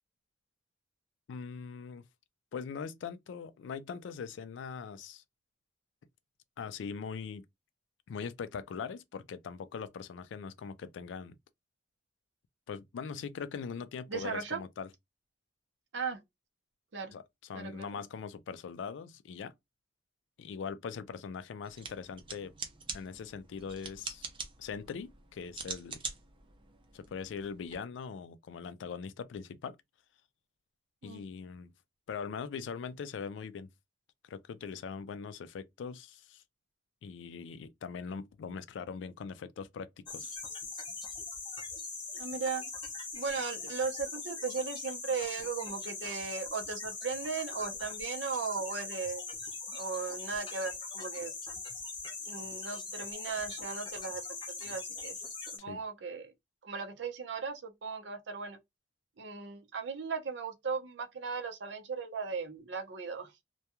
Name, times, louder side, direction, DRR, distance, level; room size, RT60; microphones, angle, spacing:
voice 1, 1.3-2.0 2.5-5.2 6.6-7.5 8.1-11.4 12.7-14.9 17.1-19.5 20.4-22.5 22.9-24.3 24.6-26.0 26.9-29.8 31.0-31.7 32.1-33.7 34.2-36.4 37.0-40.3 55.7-55.8, left 6 dB, 75° left, 0.3 m, -41 dB
voice 2, 14.1-14.6 15.9-16.2 16.9-17.1 17.5-17.9 31.0-31.2 42.1-42.6 43.1-49.2 49.7-51.3 52.3-54.2 54.6-55.1 55.5-56.3 56.6-58.6 59.2-63.4, right 5 dB, 70° right, 0.6 m, -37 dB
sound 1, 21.6-27.7, right 5 dB, 30° right, 0.5 m, -45 dB
sound 2, 40.1-55.6, left 4 dB, 25° left, 0.6 m, -41 dB
2.2 x 2.2 x 2.8 m
head